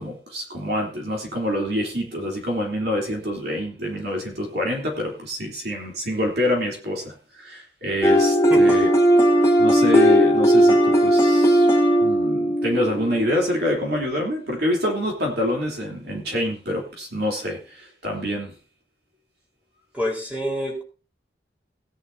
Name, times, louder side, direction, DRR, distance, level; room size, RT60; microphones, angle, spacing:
voice 1, 0.0-8.9 9.6-11.7 12.0-18.5, equal, 60° right, 0 dB, 3.3 m, -26 dB
sound 1, 8.0-13.8, equal, 15° left, 3.1 m, -17 dB
voice 2, 8.5-8.8 19.9-20.8, equal, 10° right, -1 dB, 4.2 m, -27 dB
18.0 x 10.5 x 2.8 m, 0.36 s
head